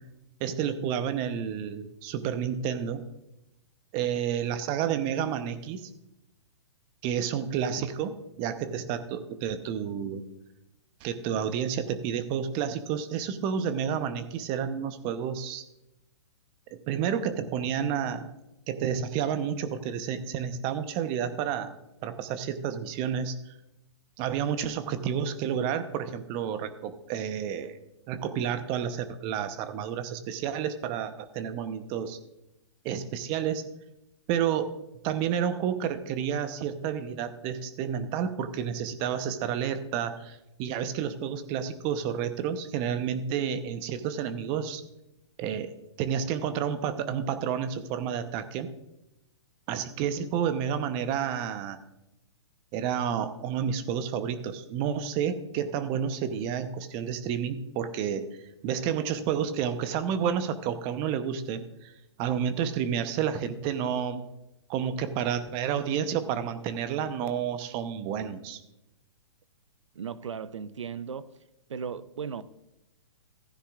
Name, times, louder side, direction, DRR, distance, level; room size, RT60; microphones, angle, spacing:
voice 1, 0.4-3.0 3.9-5.9 7.0-10.2 11.0-15.6 16.7-18.3 18.7-21.7 22.0-23.5 24.2-27.7 28.1-32.2 32.8-33.6 34.3-34.7 35.0-44.8 45.4-45.7 46.0-48.7 49.7-51.8 52.7-58.3 58.6-61.9 62.2-64.2 64.7-68.6, right 8 dB, 35° right, 0.9 m, -30 dB
voice 2, 69.9-71.3 71.7-72.4, right 6 dB, 80° right, 0.6 m, -36 dB
15.0 x 9.9 x 2.5 m
hypercardioid pair, 125°, 15 cm